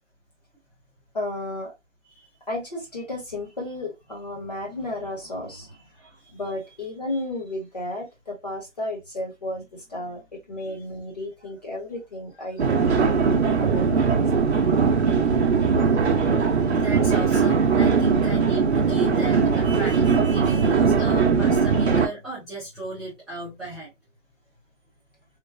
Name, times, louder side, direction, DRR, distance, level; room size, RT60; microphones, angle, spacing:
voice 1, 1.1-1.7 2.5-5.7 6.3-14.2, left 1 dB, 35° left, 1.0 m, -33 dB
voice 2, 5.9-6.3 7.1-7.2 10.6-10.8 16.3-23.9, right 2 dB, ahead, 0.5 m, -36 dB
sound 1, 12.6-22.1, right 5 dB, 60° right, 0.6 m, -20 dB
3.1 x 2.0 x 2.2 m
hypercardioid pair, 175°, 38 cm